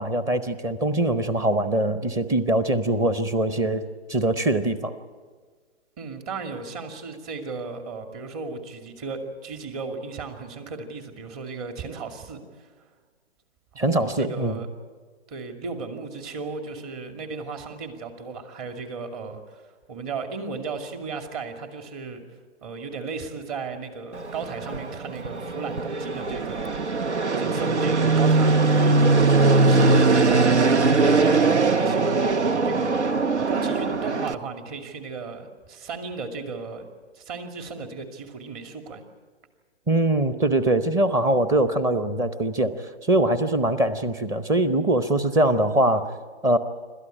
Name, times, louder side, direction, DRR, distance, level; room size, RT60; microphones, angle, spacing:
voice 1, 0.0-3.8 4.1-4.9 13.8-14.6 39.9-46.1 46.4-46.6, right 1 dB, 10° right, 12 dB, 0.7 m, -22 dB
voice 2, 6.0-12.9 13.7-14.7 15.3-19.6 19.9-22.2 22.6-27.1 27.4-33.0 33.5-36.8 37.1-39.0, right 4 dB, 35° right, 6 dB, 2.5 m, -35 dB
Fixed-wing aircraft airplane, 24.1-34.3, right 3 dB, 90° right, 1.0 m, -21 dB
27.0 x 13.0 x 9.9 m, 1.5 s
figure-of-eight pair, 135°, 33 cm